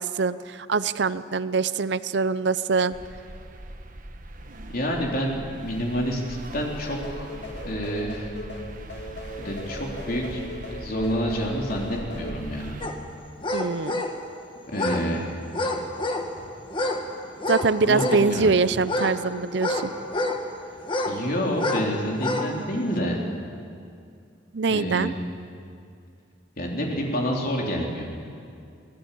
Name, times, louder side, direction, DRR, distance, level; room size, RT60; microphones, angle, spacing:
voice 1, 0.0-2.9 13.5-14.0 17.5-19.9 24.5-25.1, right 4 dB, 65° right, 15 dB, 0.6 m, -23 dB
sound 1, 2.9-12.9, right 1 dB, 45° right, 1.4 m, -41 dB
voice 2, 4.7-7.3 7.7-8.3 9.4-12.8 14.7-15.4 16.4-16.5 17.8-18.5 21.1-23.2 24.7-25.2 26.6-28.1, equal, 50° left, -1 dB, 3.9 m, -28 dB
sound 2, 7.0-12.3, left 1 dB, 65° left, 2.4 m, -39 dB
sound 3, 12.8-13.0 13.4-14.2 14.7-15.1 15.5-16.3 16.7-17.0 17.4-18.3 18.8-20.4 20.8-21.2 21.5-21.9 22.2-22.5 22.9-23.0, left 2 dB, 25° left, 1.8 m, -27 dB
24.5 x 16.5 x 8.6 m, 2.4 s
head